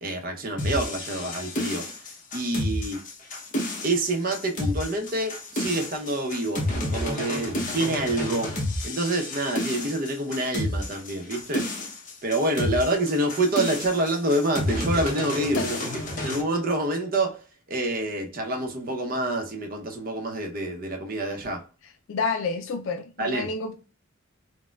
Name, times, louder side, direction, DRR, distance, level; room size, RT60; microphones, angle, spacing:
voice 1, 0.0-1.9 2.3-3.0 3.8-8.5 8.8-11.7 12.2-17.4 17.7-21.6 23.2-23.5, right 1 dB, 45° right, 0.7 m, -27 dB
sound 1, 0.6-16.4, left 1 dB, 40° left, 0.8 m, -30 dB
voice 2, 22.1-23.8, left 4 dB, 75° left, 0.4 m, -29 dB
4.2 x 2.1 x 2.3 m
head